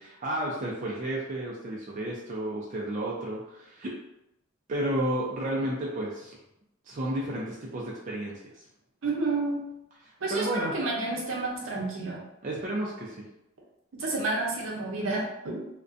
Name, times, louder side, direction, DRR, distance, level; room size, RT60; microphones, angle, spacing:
voice 1, 0.0-4.0 4.7-6.4 6.9-8.5 10.3-10.7 12.4-13.3, right 1 dB, 40° right, -4 dB, 0.4 m, -32 dB
voice 2, 9.0-9.6 10.2-12.2 13.9-15.7, right 2 dB, 75° right, -2 dB, 0.7 m, -30 dB
2.4 x 2.1 x 2.5 m, 0.86 s
head